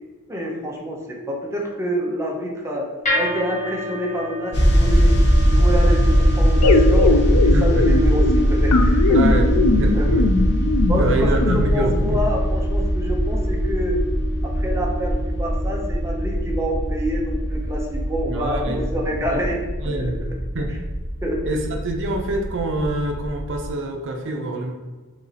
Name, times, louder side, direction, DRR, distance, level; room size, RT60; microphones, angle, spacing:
voice 1, 0.3-2.9 3.1-5.1 5.5-9.2 9.9-10.2 10.9-14.0 14.4-19.6 19.8-20.3 21.2-21.6, equal, 10° right, -2 dB, 0.6 m, -27 dB
sound 1, 3.0-19.3, equal, 35° left, 1.1 m, -32 dB
sound 2, 4.5-23.7, equal, 50° left, 0.8 m, -21 dB
sound 3, 6.6-12.1, left 3 dB, 90° left, 0.4 m, -21 dB
voice 2, 7.5-7.8 9.1-9.5 9.8-10.3 11.0-12.2 18.3-19.4 19.8-20.2 20.5-20.7 21.4-24.7, right 2 dB, 55° right, 2 dB, 0.6 m, -26 dB
5.2 x 3.0 x 2.8 m, 1.3 s
head